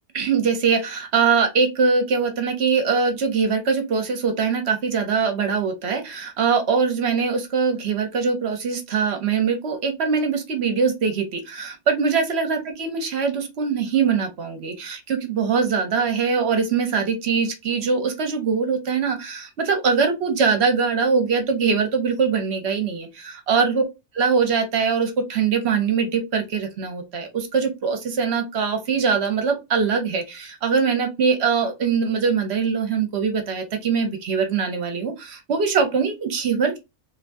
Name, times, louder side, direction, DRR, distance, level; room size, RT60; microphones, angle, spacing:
voice 1, 0.1-23.8 24.2-36.8, right 5 dB, 60° right, 6 dB, 0.8 m, -22 dB
3.5 x 2.5 x 2.5 m, 0.23 s
omnidirectional pair, 1.4 m